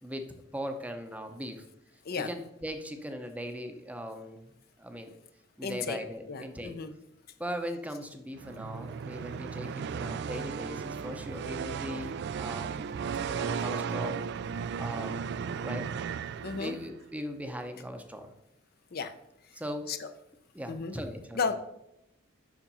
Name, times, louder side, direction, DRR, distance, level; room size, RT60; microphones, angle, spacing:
voice 1, 0.0-1.6 2.2-5.1 5.6-6.8 7.4-12.9 13.2-14.2 14.7-15.3 15.6-15.9 16.4-18.3 19.5-19.9 20.5-21.4, equal, 5° right, 6 dB, 0.7 m, -39 dB
voice 2, 5.6-6.0 6.3-6.9 16.4-16.8 18.9-19.1 19.9-20.1 20.7-21.0 21.3-21.5, left 5 dB, 50° left, 9 dB, 0.6 m, -33 dB
sound 1, 8.3-17.0, right 6 dB, 55° right, 0.3 m, -35 dB
7.3 x 5.9 x 5.4 m, 0.83 s
head